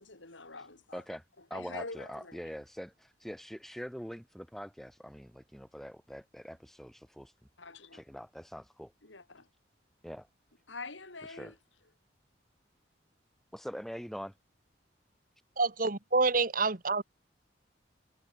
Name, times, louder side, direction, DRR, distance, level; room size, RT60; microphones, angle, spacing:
voice 1, 0.0-1.0 1.4-2.5 7.6-8.0 9.0-9.5 10.7-11.5, left 3 dB, 80° left, 5.0 m, -45 dB
voice 2, 0.9-1.2 1.5-7.3 7.9-8.9 10.0-10.3 11.3-11.5 13.5-14.3, equal, ahead, 4.5 m, -43 dB
voice 3, 15.6-17.0, right 3 dB, 45° right, 1.5 m, -27 dB
head